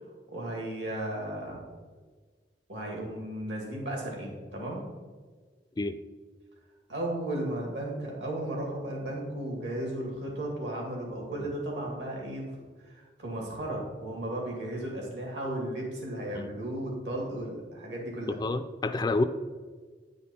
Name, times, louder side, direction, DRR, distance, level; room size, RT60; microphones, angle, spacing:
voice 1, 0.3-1.6 2.7-4.8 6.9-12.5 12.8-18.4, right 1 dB, 80° right, -1 dB, 2.6 m, -35 dB
voice 2, 18.3-19.2, left 2 dB, 25° left, 10 dB, 0.3 m, -29 dB
9.8 x 5.1 x 4.3 m, 1.4 s
head